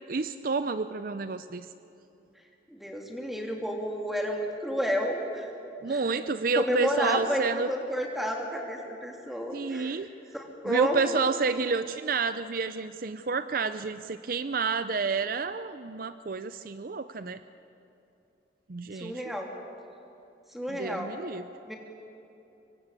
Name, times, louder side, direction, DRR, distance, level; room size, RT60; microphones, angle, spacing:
voice 1, 0.1-1.7 5.8-7.7 9.5-10.1 10.6-17.4 18.7-19.2 20.7-21.4, right 4 dB, 50° right, 12 dB, 0.5 m, -29 dB
voice 2, 2.7-5.5 5.9-6.0 6.5-10.0 10.3-11.2 18.9-19.5 20.5-21.1 21.7-21.8, equal, ahead, 1 dB, 2.9 m, -31 dB
25.5 x 22.5 x 8.3 m, 2.9 s
head